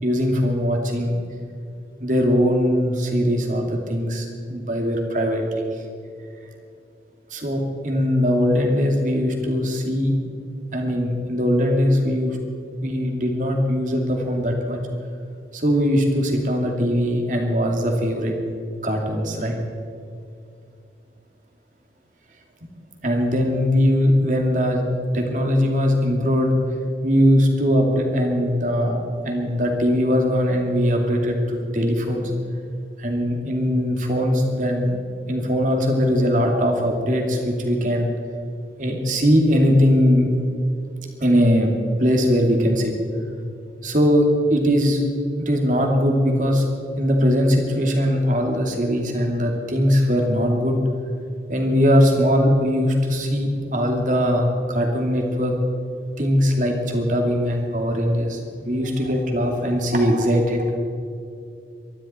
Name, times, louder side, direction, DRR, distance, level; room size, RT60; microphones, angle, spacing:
voice 1, 0.0-1.2 2.0-5.4 7.3-10.1 10.7-12.4 12.8-14.8 15.5-18.3 18.8-19.5 23.0-24.8 25.1-26.6 27.0-32.3 33.0-35.0 35.3-38.1 38.8-40.3 41.2-41.7 42.0-42.9 43.8-45.0 45.4-46.7 47.0-50.8 51.5-55.5 56.2-60.7, equal, 45° right, 2 dB, 2.5 m, -20 dB
24.0 x 12.0 x 4.4 m, 2.5 s
head